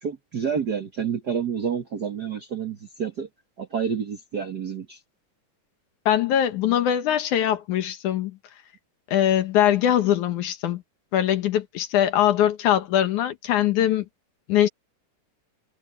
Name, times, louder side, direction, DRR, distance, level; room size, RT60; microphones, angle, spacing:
voice 1, 0.0-3.3 3.6-5.0, right 7 dB, 45° right, 1.4 m, -29 dB
voice 2, 6.1-8.3 9.1-10.8 11.1-14.0 14.5-14.7, left 11 dB, 75° left, 2.7 m, -22 dB
omnidirectional pair, 3.6 m